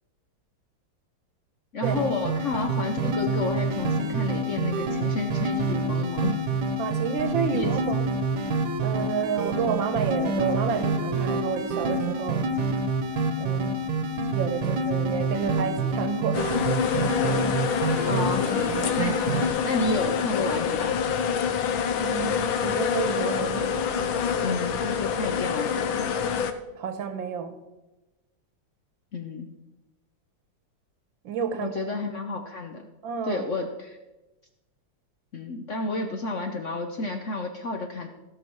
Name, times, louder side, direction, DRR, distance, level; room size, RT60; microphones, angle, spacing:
voice 1, 1.7-6.4 7.5-7.7 18.0-18.5 19.0-19.2 19.6-21.0 24.4-26.3 29.1-29.5 31.6-32.8 33.2-34.0 35.3-38.1, left 3 dB, 55° left, 4 dB, 0.8 m, -31 dB
sound 1, 1.8-19.5, right 2 dB, 60° right, 1.5 m, -27 dB
voice 2, 6.8-8.2 8.8-12.4 13.4-13.7 14.3-16.5 22.0-23.8 26.8-27.6 31.2-31.7 33.0-33.5, right 6 dB, 80° right, 8 dB, 1.8 m, -30 dB
sound 2, 16.3-26.5, left 7 dB, 85° left, 1.5 m, -26 dB
16.0 x 6.0 x 4.6 m, 1.1 s
omnidirectional pair, 2.1 m